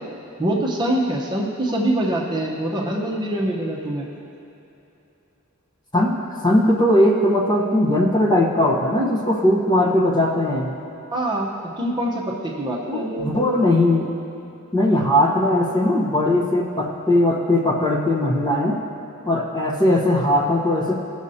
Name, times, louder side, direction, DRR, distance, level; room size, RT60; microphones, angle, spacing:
voice 1, 0.4-4.1 11.1-13.4, right 1 dB, 20° right, -3 dB, 0.8 m, -24 dB
voice 2, 5.9-10.8 12.9-14.1 14.7-18.8 19.2-20.9, left 1 dB, 20° left, -3 dB, 0.9 m, -19 dB
16.0 x 6.4 x 2.8 m, 2.9 s
head